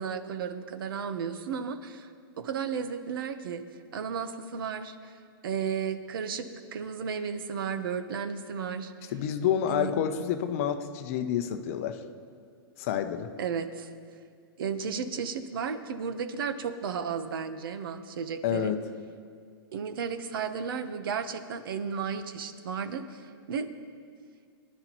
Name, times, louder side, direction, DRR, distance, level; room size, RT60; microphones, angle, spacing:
voice 1, 0.0-2.1 2.4-3.6 3.9-5.1 5.4-8.9 9.7-9.9 13.4-13.9 14.6-18.7 19.7-23.7, right 6 dB, 65° right, 10 dB, 1.0 m, -34 dB
voice 2, 9.1-12.0 12.8-13.3 18.4-18.8, left 9 dB, 35° left, 8 dB, 0.7 m, -28 dB
22.5 x 11.5 x 3.0 m, 2.1 s
hypercardioid pair, 165°, 13 cm